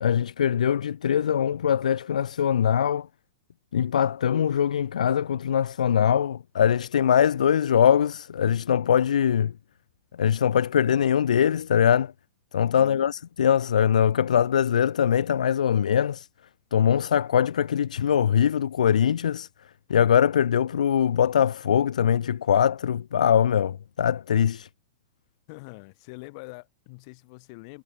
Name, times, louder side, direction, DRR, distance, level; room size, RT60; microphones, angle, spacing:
voice 1, 0.0-3.1 3.7-9.5 10.2-12.1 12.5-16.3 16.7-19.5 19.9-24.7, left 8 dB, 70° left, 0.4 m, -22 dB
voice 2, 12.7-13.1 25.5-27.8, left 29 dB, 45° left, 4.1 m, -44 dB
figure-of-eight pair, 100°, 4 cm